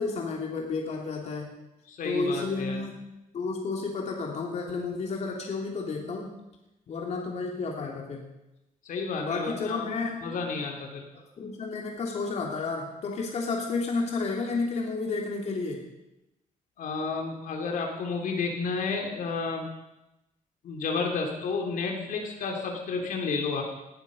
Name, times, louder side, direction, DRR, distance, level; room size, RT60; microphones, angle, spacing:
voice 1, 0.0-1.5 2.0-2.9 3.3-6.3 6.9-8.2 9.2-10.3 11.1-15.8, left 4 dB, 50° left, 0 dB, 3.0 m, -31 dB
voice 2, 1.9-2.8 8.8-9.9 10.2-11.1 16.8-19.7 20.6-23.6, left 4 dB, 75° left, 2 dB, 3.1 m, -31 dB
19.5 x 14.0 x 5.4 m, 0.93 s
wide cardioid pair, 165°, 14 cm